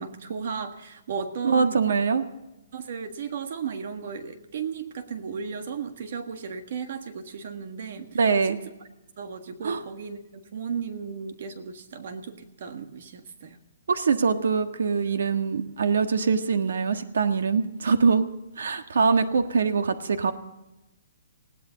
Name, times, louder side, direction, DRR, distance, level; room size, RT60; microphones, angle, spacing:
voice 1, 0.0-1.8 2.7-8.2 8.5-8.6 9.2-13.6, right 6 dB, 45° right, 8 dB, 1.5 m, -35 dB
voice 2, 1.4-2.2 8.1-8.6 9.6-9.8 13.9-18.3 18.6-20.3, right 5 dB, 80° right, 8 dB, 1.5 m, -23 dB
20.0 x 16.5 x 3.9 m, 0.97 s
hypercardioid pair, 180°, 0 cm